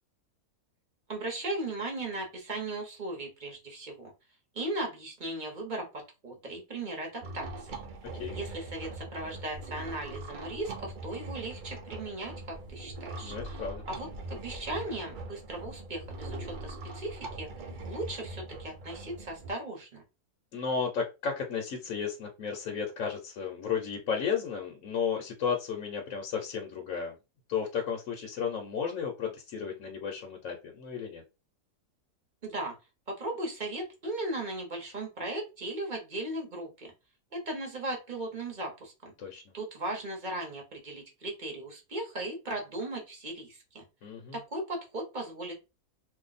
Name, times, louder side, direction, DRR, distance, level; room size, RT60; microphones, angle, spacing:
voice 1, 1.1-4.1 4.5-7.8 8.3-20.0 32.4-32.8 33.1-36.9 37.3-39.1 39.5-43.8 44.3-45.5, right 2 dB, 35° right, 1 dB, 1.0 m, -37 dB
sound 1, 7.2-19.5, right 2 dB, 80° right, 0.4 m, -42 dB
voice 2, 13.2-13.8 20.5-27.2 27.5-31.2 39.2-39.4 44.0-44.4, left 6 dB, 65° left, 1 dB, 1.0 m, -33 dB
2.7 x 2.3 x 4.0 m, 0.28 s
omnidirectional pair, 1.6 m